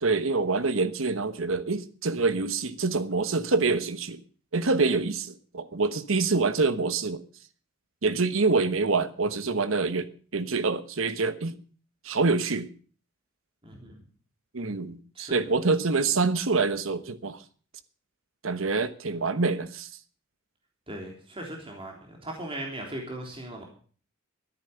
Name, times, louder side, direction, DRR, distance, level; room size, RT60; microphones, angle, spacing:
voice 1, 0.0-4.2 4.5-7.2 8.0-11.6 12.0-12.7 14.5-17.4 18.4-19.9, right 4 dB, 70° right, 1.1 m, -26 dB
voice 2, 13.6-14.0 15.1-15.3 20.9-23.6, right 1 dB, 25° right, 3.3 m, -38 dB
13.0 x 10.5 x 6.7 m
head